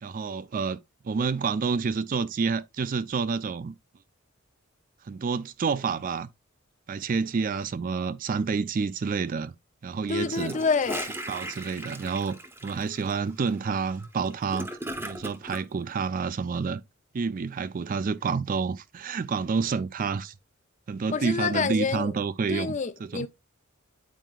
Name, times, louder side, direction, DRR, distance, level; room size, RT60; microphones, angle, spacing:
voice 1, 0.0-3.7 5.0-6.3 6.9-9.6 9.8-10.6 11.3-14.7 15.0-16.8 17.1-20.3 20.9-23.3, right 5 dB, 40° right, 0.4 m, -29 dB
voice 2, 10.1-11.1 21.1-22.1 22.5-23.3, left 5 dB, 35° left, 0.4 m, -27 dB
Gurgling / Toilet flush, 10.3-15.6, right 1 dB, 10° right, 0.8 m, -38 dB
9.1 x 4.5 x 2.3 m
head